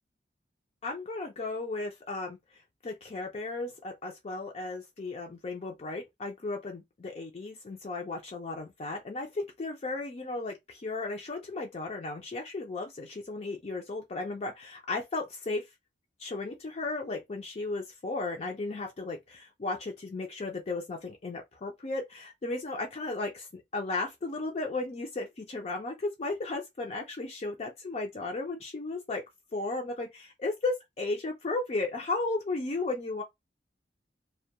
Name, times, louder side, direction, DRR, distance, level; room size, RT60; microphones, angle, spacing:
voice 1, 0.8-2.4 2.8-15.6 16.2-29.2 29.5-33.2, left 3 dB, 35° left, 0.4 m, -35 dB
2.2 x 2.1 x 2.7 m
head